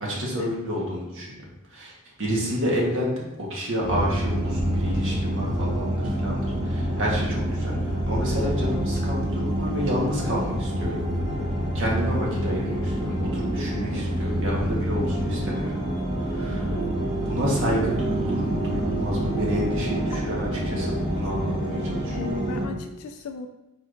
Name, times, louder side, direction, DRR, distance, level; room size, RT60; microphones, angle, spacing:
voice 1, 0.0-1.3 1.7-10.9 11.7-15.7 16.2-16.7 17.3-22.2, equal, 60° right, -4 dB, 1.4 m, -29 dB
sound 1, 3.8-22.7, right 1 dB, 40° right, 1.4 m, -27 dB
voice 2, 16.7-17.0 20.1-20.3 20.6-20.7 21.1-21.3 22.1-23.5, left 5 dB, 70° left, 5 dB, 0.3 m, -36 dB
4.7 x 4.2 x 2.6 m, 1.0 s
head